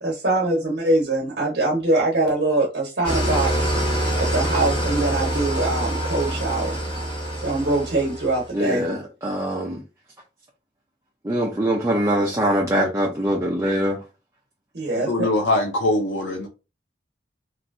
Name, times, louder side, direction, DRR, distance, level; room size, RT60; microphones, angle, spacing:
voice 1, 0.0-3.5 4.3-6.8 7.4-8.9 14.7-15.3, right 2 dB, 65° right, 1.0 m, -23 dB
Engine starting / Idling, 3.0-8.5, right 1 dB, 30° left, 1.2 m, -25 dB
voice 2, 8.5-9.8 11.2-14.0, right 1 dB, 15° right, 0.6 m, -23 dB
voice 3, 14.9-16.5, left 2 dB, 90° left, 0.5 m, -23 dB
2.9 x 2.6 x 2.6 m
head